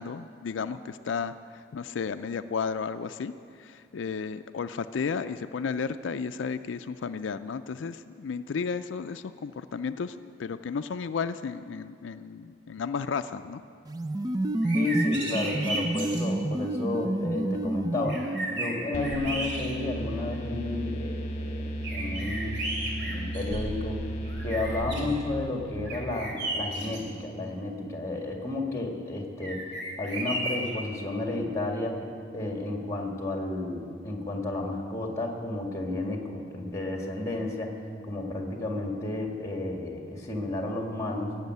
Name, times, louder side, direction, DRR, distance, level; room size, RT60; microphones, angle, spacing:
voice 1, 0.0-3.3 3.6-13.6, left 5 dB, 85° left, 10 dB, 0.4 m, -33 dB
sound 1, 13.9-18.8, right 1 dB, 20° right, 0.4 m, -29 dB
sound 2, 14.5-16.3 17.6-17.7 18.1-20.0 20.5-20.6 21.8-23.9 24.2-25.1 25.8-27.0 29.4-30.8, right 1 dB, 65° right, 2.9 m, -34 dB
voice 2, 14.7-22.7 23.0-24.1 24.4-29.6 30.0-32.0 32.3-37.7 38.1-41.4, left 2 dB, 15° left, 2 dB, 1.8 m, -32 dB
sound 3, 18.9-26.6, equal, 40° left, 1.3 m, -35 dB
17.0 x 7.4 x 9.3 m, 2.4 s
head